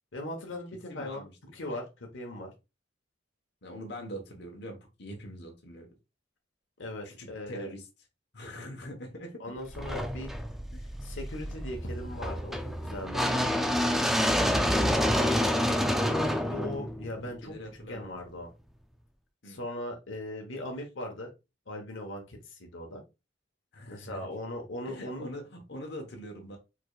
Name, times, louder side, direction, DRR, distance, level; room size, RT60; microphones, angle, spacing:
voice 1, 0.1-1.2 1.5-2.5 6.8-7.7 9.4-10.3 11.0-12.6 12.8-13.4 16.4-17.5 17.9-18.5 19.5-21.3 21.7-23.0 23.9-25.3, left 1 dB, 90° left, 2 dB, 1.1 m, -39 dB
voice 2, 0.9-1.3 3.6-5.9 7.0-7.9 8.3-9.4 10.7-10.9 15.1-15.8 17.4-18.1 19.4-19.6 23.7-24.3 24.8-26.6, equal, 60° left, 2 dB, 1.2 m, -43 dB
sound 1, 9.7-17.8, equal, ahead, 0.5 m, -28 dB
4.8 x 3.9 x 2.4 m, 0.27 s
head